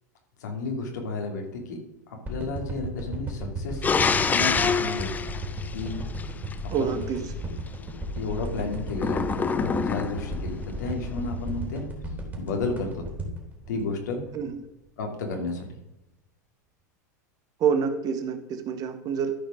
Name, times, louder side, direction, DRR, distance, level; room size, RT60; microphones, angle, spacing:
voice 1, 0.4-1.8 2.1-3.9 4.2-5.3 5.7-6.0 6.8-7.0 8.2-11.8 12.4-13.0 13.7-14.2 15.0-15.8, left 3 dB, 80° left, 2 dB, 2.8 m, -32 dB
sound 1, 2.3-14.6 15.0-15.1, right 1 dB, 20° right, 3.1 m, -34 dB
sound 2, 3.8-6.5 8.9-10.4, left 5 dB, 20° left, 0.6 m, -26 dB
voice 2, 6.7-7.3 14.3-14.5 17.6-19.3, right 6 dB, 40° right, 8 dB, 1.6 m, -27 dB
13.0 x 5.3 x 5.1 m, 0.90 s
hypercardioid pair, 110°, 9 cm